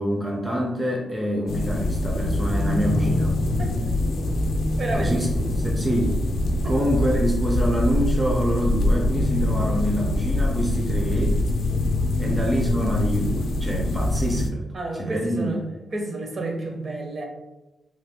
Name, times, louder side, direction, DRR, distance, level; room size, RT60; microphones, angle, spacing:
voice 1, 0.0-3.4 4.9-5.3 5.6-6.2 6.6-11.4 12.2-14.6 15.0-15.5, equal, 15° right, 0 dB, 0.5 m, -26 dB
sound 1, 1.5-14.5, left 1 dB, 70° left, 0.4 m, -24 dB
voice 2, 4.8-5.2 12.2-12.3 14.7-15.6 15.9-17.3, right 2 dB, 50° right, 1 dB, 0.7 m, -30 dB
3.1 x 2.2 x 3.4 m, 0.99 s
cardioid pair, 110°, 0 cm